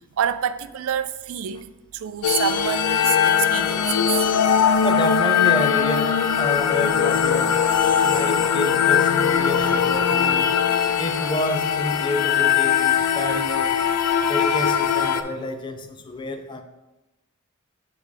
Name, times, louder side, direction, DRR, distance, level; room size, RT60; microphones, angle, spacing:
voice 1, 0.0-4.2, right 9 dB, 65° right, 0.3 m, -27 dB
sound 1, 2.2-15.2, left 8 dB, 90° left, 0.4 m, -20 dB
voice 2, 4.8-7.7 8.0-10.6 11.0-13.8 14.2-16.6, left 2 dB, 20° left, 0.4 m, -29 dB
6.6 x 3.5 x 4.8 m
head